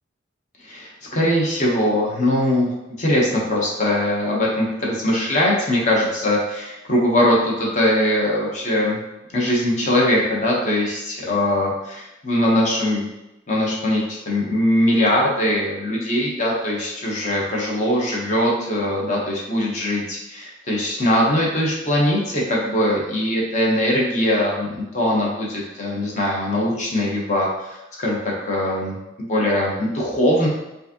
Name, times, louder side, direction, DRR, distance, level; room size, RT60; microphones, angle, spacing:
voice 1, 0.6-2.7 3.0-9.0 9.3-13.1 13.5-30.5, left 1 dB, 40° left, -3 dB, 0.9 m, -21 dB
4.7 x 2.6 x 2.8 m, 0.94 s
head